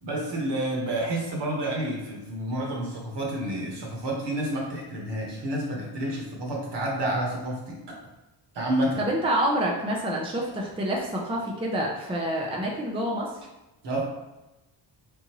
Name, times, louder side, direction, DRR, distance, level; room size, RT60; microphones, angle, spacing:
voice 1, 0.0-8.0 8.5-9.0 13.8-14.0, right 1 dB, 60° right, -2 dB, 1.4 m, -29 dB
voice 2, 9.0-13.3, right 1 dB, 10° right, -2 dB, 0.6 m, -27 dB
4.3 x 3.8 x 3.0 m, 1.0 s
cardioid pair, 130°, 46 cm